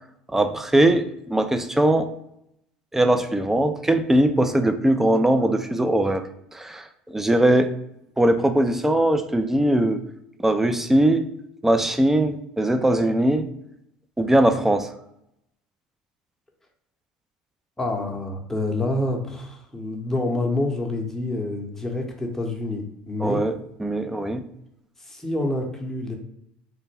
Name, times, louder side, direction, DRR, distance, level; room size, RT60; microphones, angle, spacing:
voice 1, 0.3-2.1 2.9-6.3 6.5-7.7 8.2-10.0 10.4-11.3 11.6-13.5 14.2-14.9 23.2-23.5 23.8-24.4, right 1 dB, 5° right, 7 dB, 0.4 m, -20 dB
voice 2, 17.8-23.4 25.0-26.2, left 2 dB, 10° left, 1 dB, 0.8 m, -27 dB
3.3 x 2.1 x 3.3 m, 0.78 s
hypercardioid pair, 80°, 5 cm